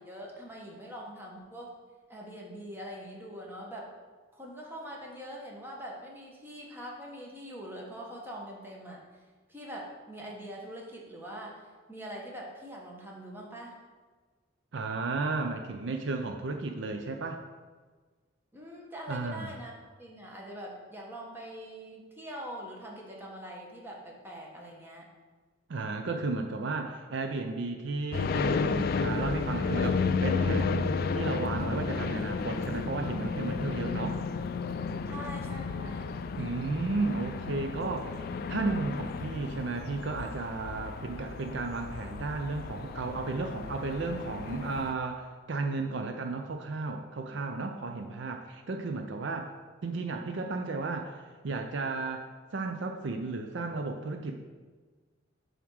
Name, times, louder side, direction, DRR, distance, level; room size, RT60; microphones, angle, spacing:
voice 1, 0.0-1.7 2.1-3.9 4.3-9.0 9.5-13.8 18.5-25.1 35.1-36.1 47.3-47.4, equal, 10° right, -2 dB, 1.2 m, -43 dB
voice 2, 14.7-17.4 19.1-19.5 25.7-34.2 36.4-49.5 49.8-52.3 52.5-54.4, right 3 dB, 60° right, 5 dB, 0.5 m, -34 dB
sound 1, 28.1-44.9, left 5 dB, 45° left, 0.3 m, -33 dB
7.1 x 3.5 x 6.3 m, 1.4 s
head